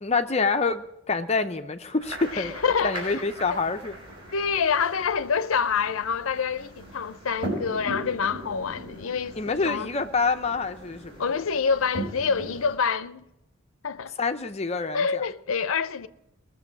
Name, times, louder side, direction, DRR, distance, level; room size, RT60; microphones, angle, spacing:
voice 1, 0.0-2.5 2.8-4.0 9.3-11.3 14.2-15.2, left 4 dB, 30° left, 0.7 m, -27 dB
sound 1, 2.0-12.7, right 1 dB, 25° right, 5.3 m, -39 dB
voice 2, 2.3-3.0 3.5-3.6 4.3-9.9 11.2-13.3 13.8-14.1 14.9-16.1, left 6 dB, 85° left, 0.6 m, -27 dB
20.0 x 7.1 x 6.1 m
head